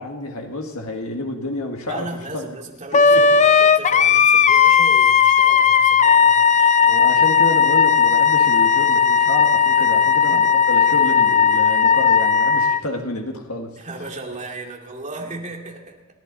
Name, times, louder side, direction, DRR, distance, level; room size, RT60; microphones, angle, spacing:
voice 1, 0.0-2.5 3.1-3.4 6.9-13.8, left 2 dB, 75° left, 2 dB, 1.9 m, -29 dB
voice 2, 1.9-7.0 9.8-10.5 10.9-11.0 13.8-16.0, right 2 dB, 35° right, 0 dB, 2.5 m, -36 dB
Wind instrument woodwind instrument, 2.9-12.8, left 6 dB, 35° left, 0.5 m, -15 dB
27.5 x 11.0 x 4.1 m, 1.0 s
head